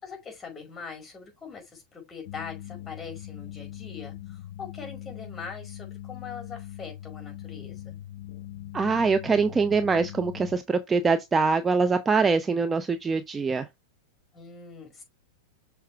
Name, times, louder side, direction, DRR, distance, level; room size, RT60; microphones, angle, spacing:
voice 1, 0.0-8.0 14.3-15.0, left 5 dB, 20° left, 4.9 m, -42 dB
sound 1, 2.2-10.6, left 13 dB, 60° left, 0.8 m, -41 dB
voice 2, 8.7-13.7, right 4 dB, 20° right, 0.7 m, -24 dB
6.5 x 4.5 x 3.5 m
hypercardioid pair, 100°, 0 cm